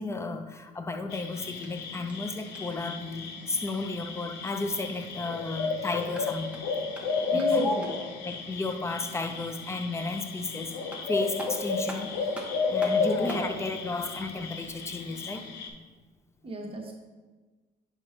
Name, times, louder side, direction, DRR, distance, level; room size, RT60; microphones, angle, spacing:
voice 1, 0.0-6.6 7.3-7.7 8.2-12.4 12.7-15.5, left 3 dB, 15° left, 8 dB, 0.5 m, -33 dB
sound 1, 1.1-15.7, left 4 dB, 80° left, 0.7 m, -32 dB
sound 2, 1.6-2.9 5.9-8.2 10.4-10.5 10.9-13.5, right 1 dB, 5° right, 0.9 m, -44 dB
voice 2, 7.3-7.9 16.4-16.9, right 1 dB, 35° right, -1 dB, 1.1 m, -34 dB
6.1 x 4.9 x 3.1 m, 1.3 s
cardioid pair, 110°, 17 cm